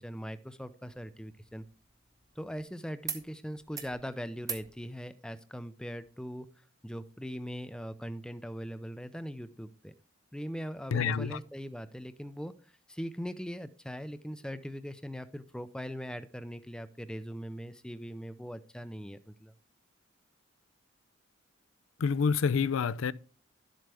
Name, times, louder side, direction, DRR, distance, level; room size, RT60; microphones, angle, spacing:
voice 1, 0.0-1.6 2.4-6.5 6.8-9.9 10.3-19.5, equal, 5° left, 0.5 m, -40 dB
sound 1, 0.9-2.6 3.0-3.3 3.6-4.0 4.4-4.7 6.0-6.1, right 6 dB, 15° right, 0.8 m, -43 dB
voice 2, 10.9-11.4 22.0-23.1, left 6 dB, 85° left, 0.4 m, -27 dB
11.5 x 7.6 x 3.4 m
head